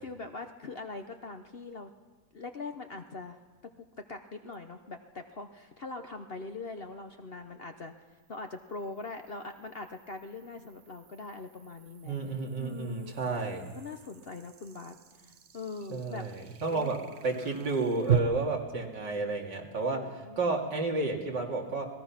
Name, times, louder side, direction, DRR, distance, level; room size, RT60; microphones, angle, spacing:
voice 1, 0.0-1.9 2.3-3.4 3.8-7.9 8.3-12.2 12.6-16.2 16.7-16.9 18.1-18.6 19.1-19.3 19.9-20.4 21.0-21.5, left 3 dB, 45° left, 6 dB, 0.9 m, -42 dB
sound 1, 4.5-4.6 8.0-18.2, right 9 dB, 50° right, 0.9 m, -39 dB
voice 2, 12.0-13.7 15.9-17.0 17.2-20.0 20.4-21.9, right 3 dB, 80° right, 1 dB, 3.1 m, -31 dB
29.5 x 19.5 x 5.9 m, 1.3 s
omnidirectional pair, 1.9 m